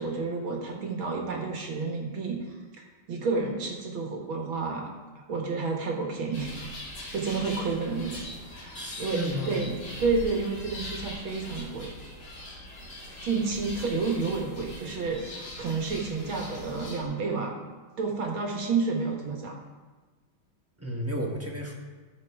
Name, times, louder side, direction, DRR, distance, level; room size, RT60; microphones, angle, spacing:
voice 1, 0.0-4.9 5.2-6.5 7.0-8.3 8.5-9.2 9.5-11.9 13.2-17.5 18.0-19.6, right 4 dB, 80° right, 1 dB, 2.5 m, -30 dB
sound 1, 6.3-17.0, left 1 dB, 80° left, 2.9 m, -41 dB
voice 2, 8.7-9.6 20.8-21.7, equal, 10° right, -1 dB, 1.3 m, -32 dB
14.5 x 6.5 x 4.8 m, 1.3 s
omnidirectional pair, 2.2 m